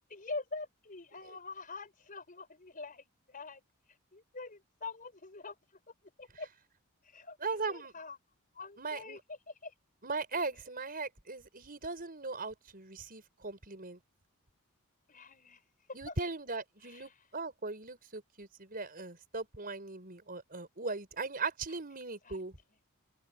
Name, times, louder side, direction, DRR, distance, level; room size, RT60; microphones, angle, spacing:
voice 1, 0.1-3.6 4.1-5.6 6.2-6.5 7.0-8.2 8.5-9.7 15.1-15.6 16.1-16.2 16.8-17.3 22.2-22.4, left 3 dB, 40° left, 5.5 m, -45 dB
voice 2, 7.4-7.9 8.8-9.2 10.0-14.0 15.9-22.6, right 3 dB, 40° right, 5.2 m, -39 dB
open air
head